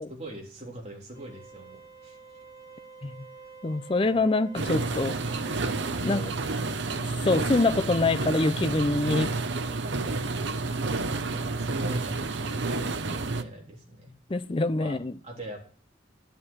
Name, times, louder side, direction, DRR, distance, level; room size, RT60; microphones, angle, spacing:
voice 1, 0.1-2.2 4.1-4.3 6.0-6.8 10.8-14.1 14.8-15.7, right 1 dB, 35° right, 3.4 m, -43 dB
sound 1, 1.1-6.2, right 4 dB, 15° right, 6.4 m, -49 dB
voice 2, 3.6-5.2 5.6-5.7 6.0-6.2 7.2-9.3 14.3-15.1, left 2 dB, 25° left, 0.5 m, -25 dB
sound 2, 4.5-13.4, right 3 dB, 70° right, 0.8 m, -30 dB
11.5 x 7.3 x 6.3 m
head